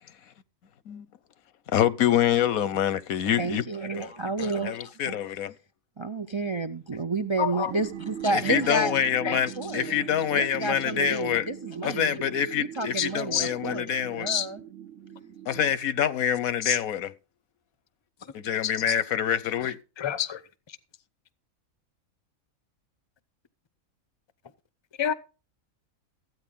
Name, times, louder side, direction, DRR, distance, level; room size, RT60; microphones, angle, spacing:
voice 1, 1.7-3.6 3.9-4.1 4.4-5.5 8.3-11.5 11.8-14.3 15.5-17.1 18.3-19.8, left 9 dB, 85° left, 1.3 m, -26 dB
voice 2, 3.4-5.1 6.0-8.9 9.2-10.0 10.3-12.2 12.6-13.9 14.2-14.6, right 2 dB, 35° right, 0.4 m, -30 dB
voice 3, 7.4-7.7 9.2-9.4 13.0-13.8 14.3-14.5 16.6-16.8 18.2-18.3 18.6-19.0 19.6-20.4 20.7-20.8 25.0-25.1, left 9 dB, 30° left, 0.6 m, -29 dB
sound 1, 7.7-15.7, right 9 dB, 70° right, 1.2 m, -41 dB
15.0 x 9.3 x 3.7 m
omnidirectional pair, 1.4 m